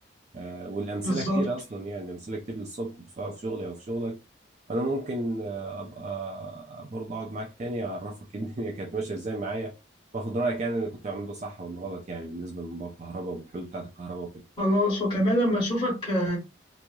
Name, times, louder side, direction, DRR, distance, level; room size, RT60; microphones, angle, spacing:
voice 1, 0.3-4.2 4.7-9.7 10.1-14.3, right 2 dB, 35° right, 0.4 m, -33 dB
voice 2, 1.0-1.5 14.6-16.4, equal, 25° left, 1.3 m, -25 dB
3.0 x 2.6 x 2.2 m
head